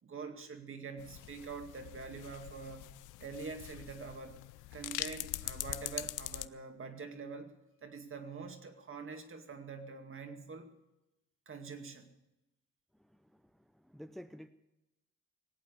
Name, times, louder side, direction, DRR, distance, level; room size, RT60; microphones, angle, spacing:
voice 1, 0.0-2.9 3.2-4.4 4.7-7.5 7.8-10.7 11.5-12.1, right 4 dB, 45° right, 6 dB, 2.3 m, -45 dB
sound 1, 1.0-6.5, left 16 dB, 85° left, 0.6 m, -43 dB
voice 2, 13.1-14.5, equal, ahead, 10 dB, 0.6 m, -51 dB
19.0 x 8.4 x 8.2 m, 0.95 s
cardioid pair, 90°, 30 cm